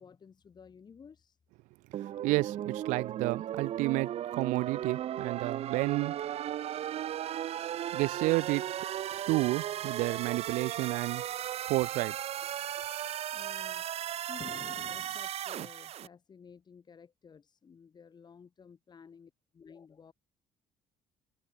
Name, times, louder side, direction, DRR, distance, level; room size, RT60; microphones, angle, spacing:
voice 1, 0.0-1.4 13.3-20.1, left 6 dB, 35° left, 7.4 m, -53 dB
sound 1, 1.9-16.1, right 11 dB, 55° right, 1.4 m, -36 dB
voice 2, 2.2-6.2 7.9-8.7 9.3-11.2 11.7-12.2, right 22 dB, 85° right, 0.6 m, -31 dB
cardioid pair, 110°, 13 cm